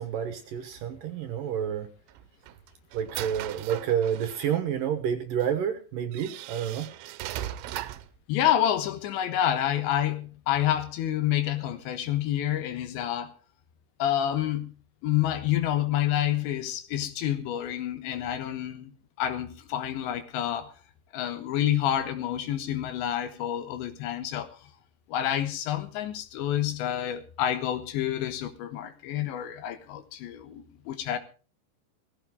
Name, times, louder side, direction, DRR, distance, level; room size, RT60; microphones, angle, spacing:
voice 1, 0.0-1.9 2.9-6.9, right 8 dB, 65° right, 2.3 m, -29 dB
sound 1, 2.1-4.6 5.4-5.5 6.1-8.2, right 13 dB, 85° right, 3.1 m, -38 dB
voice 2, 8.3-13.3 14.0-18.9 19.2-20.7 21.1-24.5 25.1-31.2, left 11 dB, 85° left, 3.6 m, -28 dB
18.0 x 15.5 x 3.6 m
omnidirectional pair, 5.0 m